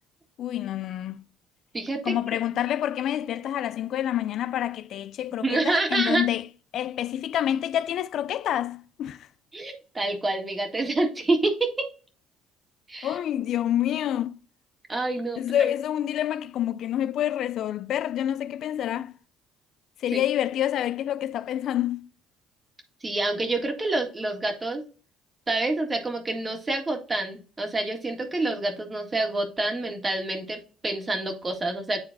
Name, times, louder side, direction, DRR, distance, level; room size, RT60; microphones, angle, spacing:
voice 1, 0.4-1.2 2.0-6.5 6.7-9.3 13.0-14.4 15.4-19.1 20.0-22.1, left 11 dB, 65° left, 0.3 m, -27 dB
voice 2, 1.7-2.2 5.4-6.2 9.5-11.9 12.9-13.2 14.9-15.4 23.0-24.8 25.5-32.0, right 2 dB, 25° right, 1.8 m, -27 dB
9.7 x 3.7 x 2.7 m
supercardioid pair, 80°, 0 cm